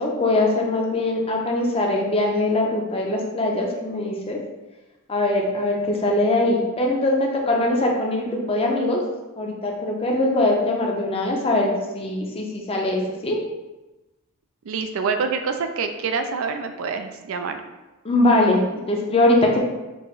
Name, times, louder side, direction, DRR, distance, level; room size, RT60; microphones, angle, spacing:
voice 1, 0.0-4.4 5.1-9.0 9.4-13.4 18.0-19.6, left 2 dB, 25° left, 0 dB, 0.6 m, -22 dB
voice 2, 14.6-17.6, right 5 dB, 70° right, 7 dB, 0.4 m, -26 dB
4.6 x 2.4 x 3.1 m, 1.1 s
head